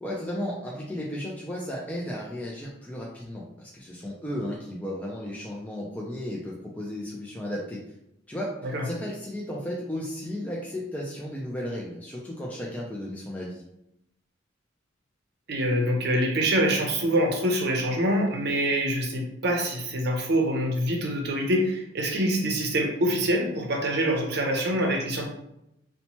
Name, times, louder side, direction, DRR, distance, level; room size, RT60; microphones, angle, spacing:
voice 1, 0.0-7.8 8.3-13.6, left 1 dB, 10° left, -4 dB, 0.3 m, -34 dB
voice 2, 15.5-25.3, right 1 dB, 60° right, 1 dB, 0.6 m, -25 dB
2.8 x 2.1 x 2.9 m, 0.83 s
head